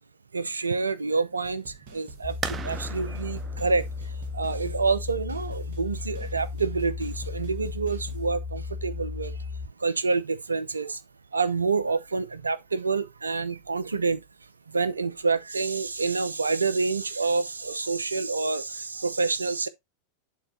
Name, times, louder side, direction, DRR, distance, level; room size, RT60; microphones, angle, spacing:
voice 1, 0.3-9.5 9.8-11.0 11.3-14.2 14.7-19.7, right 4 dB, 75° right, 0.7 m, -28 dB
sound 1, 1.4-8.3, right 3 dB, 50° right, 1.8 m, -48 dB
sound 2, 2.2-9.7, left 4 dB, 65° left, 2.8 m, -35 dB
sound 3, 2.4-7.9, right 6 dB, 20° right, 0.7 m, -41 dB
11.0 x 3.9 x 3.0 m
figure-of-eight pair, 90°, 0 cm